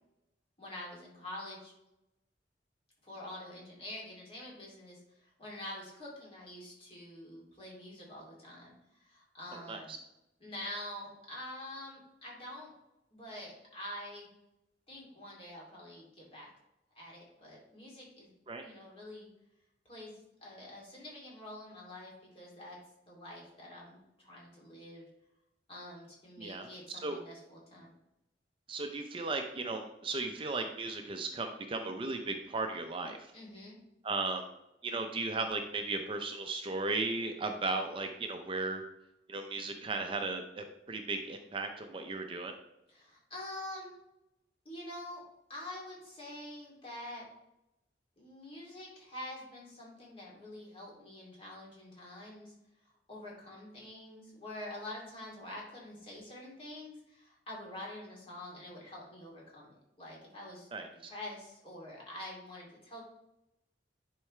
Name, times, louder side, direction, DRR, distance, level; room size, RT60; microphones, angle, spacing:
voice 1, 0.6-1.7 3.0-9.9 10.4-12.7 13.1-14.3 14.9-16.5 16.9-18.3 18.6-19.3 19.8-22.8 23.1-25.1 25.7-27.9 33.3-33.8 42.9-43.9 44.6-45.2 45.5-47.2 48.2-52.5 53.1-60.7 61.1-63.0, left 1 dB, 35° left, -4 dB, 2.8 m, -46 dB
voice 2, 9.5-10.0 18.5-18.7 26.4-27.2 28.7-33.3 34.0-34.5 34.8-38.8 39.3-42.6 60.7-60.9, right 3 dB, 30° right, 5 dB, 0.6 m, -36 dB
10.5 x 4.7 x 3.2 m, 0.87 s
head